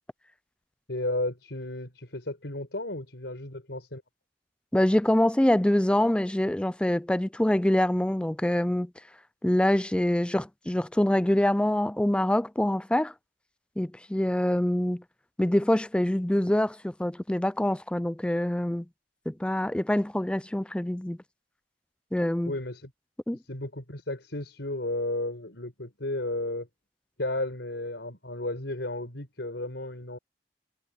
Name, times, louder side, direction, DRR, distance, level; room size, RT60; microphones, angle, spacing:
voice 1, 0.9-4.0 22.5-22.9 23.3-26.7 27.2-30.2, left 1 dB, 80° left, 4.9 m, -33 dB
voice 2, 4.7-8.9 9.4-13.1 13.8-15.0 15.4-18.9 19.3-21.2 22.1-22.5 23.3-23.4, left 1 dB, 5° left, 0.4 m, -25 dB
head